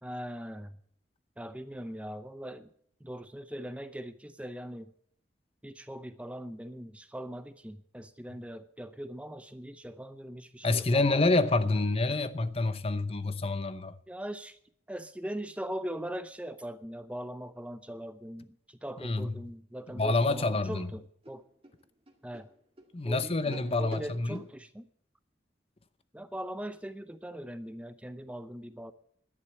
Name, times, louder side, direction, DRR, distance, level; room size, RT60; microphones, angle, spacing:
voice 1, 0.0-0.8 1.4-2.7 3.0-4.9 5.6-11.4 14.1-14.6 14.9-21.4 22.2-22.5 23.1-24.9 26.1-28.9, equal, 5° right, 0.6 m, -41 dB
voice 2, 10.6-14.0 19.0-19.3 19.9-20.9 22.9-24.4, left 2 dB, 35° left, 0.7 m, -27 dB
sound 1, 21.2-24.5, right 1 dB, 35° right, 1.9 m, -49 dB
11.5 x 10.5 x 8.2 m
head